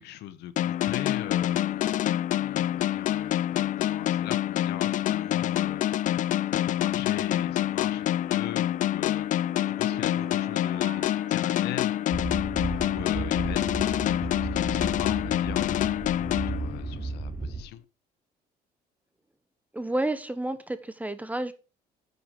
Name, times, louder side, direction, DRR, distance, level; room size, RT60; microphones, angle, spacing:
voice 1, 0.0-1.9 2.3-5.8 6.7-9.3 9.7-12.2 12.8-15.9 16.5-17.8, left 12 dB, 80° left, 1.1 m, -39 dB
sound 1, 0.6-17.2, left 12 dB, 50° left, 0.4 m, -27 dB
sound 2, 9.4-12.0 12.6-15.1, right 5 dB, 85° right, 3.7 m, -47 dB
sound 3, 12.1-17.6, right 3 dB, 25° right, 2.7 m, -34 dB
voice 2, 19.7-21.5, right 1 dB, 10° right, 1.1 m, -30 dB
9.7 x 7.1 x 4.8 m
cardioid pair, 110°, 17 cm